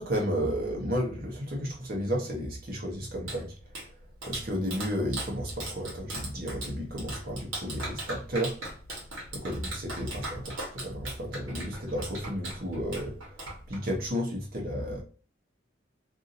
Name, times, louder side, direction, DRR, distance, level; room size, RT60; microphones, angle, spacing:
voice 1, 0.0-3.5 4.2-8.5 9.3-13.1 13.7-15.0, equal, 50° right, -1 dB, 0.9 m, -32 dB
Clapping, 2.9-14.1, right 2 dB, 90° right, 1.2 m, -40 dB
2.7 x 2.6 x 2.6 m, 0.38 s
head